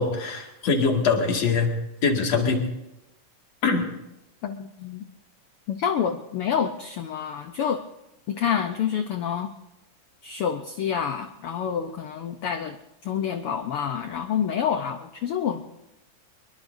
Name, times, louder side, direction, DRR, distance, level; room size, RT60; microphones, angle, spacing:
voice 1, 0.0-1.7 2.0-2.6 3.6-3.8, left 4 dB, 55° left, 1 dB, 3.2 m, -23 dB
voice 2, 4.4-5.0 5.7-7.8 8.3-9.5 10.2-12.8 13.0-15.6, left 8 dB, 85° left, 7 dB, 1.2 m, -28 dB
24.5 x 22.0 x 2.7 m, 0.93 s
omnidirectional pair, 3.6 m